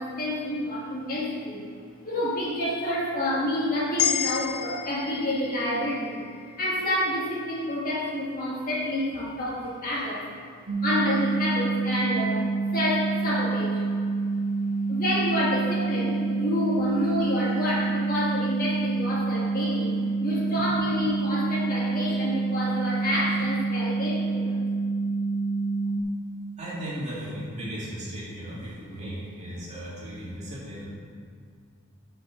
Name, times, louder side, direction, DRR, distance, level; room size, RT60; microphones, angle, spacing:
voice 1, 0.0-1.7 2.0-6.2 6.6-10.3 10.8-12.5 12.7-13.8 14.9-24.6, left 1 dB, 40° left, -5 dB, 2.0 m, -28 dB
sound 1, 4.0-8.2, left 9 dB, 75° left, 0.7 m, -32 dB
sound 2, 10.7-26.0, right 3 dB, 80° right, 1.7 m, -27 dB
voice 2, 26.3-30.9, right 1 dB, 30° right, -8 dB, 2.8 m, -36 dB
11.0 x 5.7 x 6.1 m, 2.2 s
head